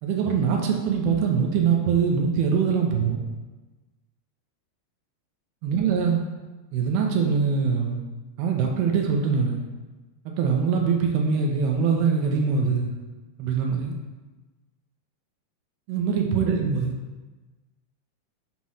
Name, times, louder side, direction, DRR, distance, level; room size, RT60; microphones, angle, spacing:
voice 1, 0.0-3.2 5.6-6.2 6.7-8.0 8.4-9.6 10.3-12.9 13.4-14.0 15.9-16.9, right 6 dB, 75° right, 1 dB, 2.4 m, -23 dB
7.4 x 3.0 x 5.5 m, 1.2 s
omnidirectional pair, 4.7 m